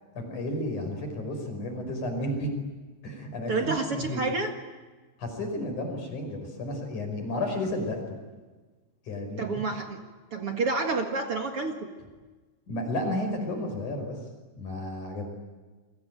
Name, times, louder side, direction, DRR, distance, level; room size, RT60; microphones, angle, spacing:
voice 1, 0.2-2.5 3.0-4.3 5.2-8.2 9.1-9.5 12.7-14.2 14.5-15.3, left 1 dB, 40° left, 4 dB, 6.6 m, -32 dB
voice 2, 3.5-4.5 9.4-10.0 10.3-11.9, right 3 dB, 55° right, 4 dB, 1.5 m, -29 dB
29.5 x 22.5 x 9.0 m, 1.3 s
omnidirectional pair, 5.4 m